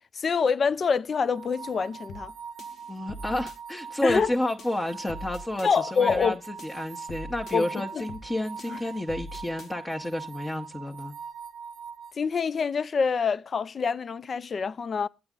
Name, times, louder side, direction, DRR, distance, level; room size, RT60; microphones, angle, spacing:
voice 1, 0.1-2.3 4.0-4.3 5.6-6.4 7.5-8.0 8.7-8.8 12.1-15.1, left 5 dB, 50° left, 0.4 m, -26 dB
sound 1, 1.3-12.1, right 6 dB, 60° right, 0.6 m, -42 dB
sound 2, 2.1-2.3 2.6-3.6 4.1-4.3 4.6-5.7 6.1-6.3 6.6-7.6 8.1-8.3 8.6-9.7, left 1 dB, 65° left, 1.0 m, -43 dB
voice 2, 2.9-11.1, left 1 dB, 20° left, 1.0 m, -30 dB
8.6 x 8.2 x 3.6 m
supercardioid pair, 60°, 0 cm